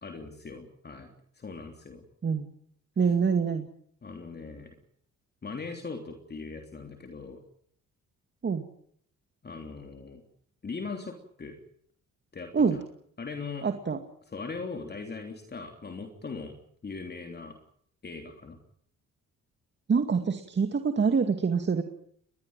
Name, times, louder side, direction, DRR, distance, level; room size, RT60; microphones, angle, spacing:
voice 1, 0.0-2.0 4.0-4.7 5.4-7.4 9.4-10.2 10.6-11.6 12.3-12.8 13.2-13.7 14.3-16.5 16.8-17.5 18.0-18.6, left 4 dB, 35° left, 4 dB, 3.4 m, -40 dB
voice 2, 3.0-3.7 8.4-8.6 12.5-12.8 13.6-14.0 19.9-21.8, right 5 dB, 35° right, 6 dB, 2.3 m, -25 dB
21.5 x 20.5 x 9.0 m, 0.65 s
cardioid pair, 90°, 30 cm